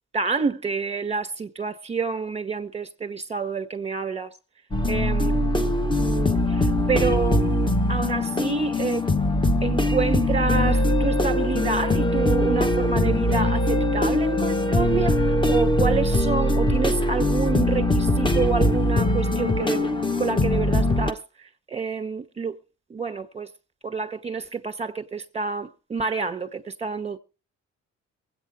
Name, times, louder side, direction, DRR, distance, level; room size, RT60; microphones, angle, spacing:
voice 1, 0.1-4.3 4.9-5.4 6.0-9.1 9.6-19.9 20.2-21.2 21.7-22.6 22.9-23.5 23.8-27.2, right 5 dB, 20° right, 1.9 m, -28 dB
sound 1, 4.7-21.1, left 1 dB, 15° left, 1.0 m, -22 dB
23.5 x 8.7 x 3.3 m
cardioid pair, 90°, 30 cm